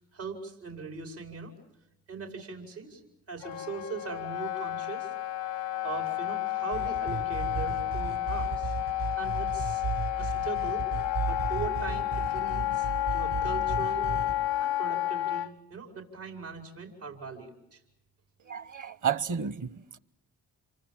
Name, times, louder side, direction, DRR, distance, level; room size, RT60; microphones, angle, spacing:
voice 1, 0.0-1.5 2.1-3.0 3.3-5.1 5.5-8.7 9.2-9.9 10.2-10.9 11.2-14.1 14.6-17.8, right 5 dB, 85° right, 5.1 m, -40 dB
Wind instrument woodwind instrument, 3.4-15.5, left 14 dB, 85° left, 0.9 m, -31 dB
sound 1, 6.7-14.3, right 7 dB, 70° right, 7.5 m, -35 dB
voice 2, 18.5-20.0, right 7 dB, 45° right, 1.1 m, -32 dB
27.5 x 24.5 x 7.4 m
supercardioid pair, 50°, 41 cm